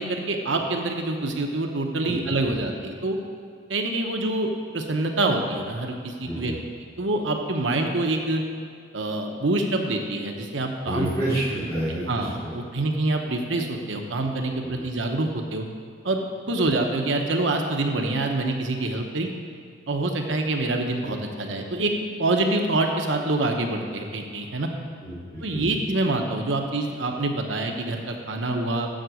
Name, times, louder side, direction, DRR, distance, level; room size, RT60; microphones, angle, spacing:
voice 1, 0.0-3.2 3.7-6.5 7.0-8.4 8.9-11.4 12.1-15.6 16.0-19.3 19.9-21.9 22.2-24.7 25.4-28.9, right 2 dB, 80° right, 3 dB, 0.9 m, -26 dB
voice 2, 6.2-6.6 10.8-12.5 14.7-14.8 25.0-25.6, right 1 dB, 15° left, -14 dB, 2.9 m, -29 dB
7.6 x 7.0 x 7.7 m, 2.2 s
head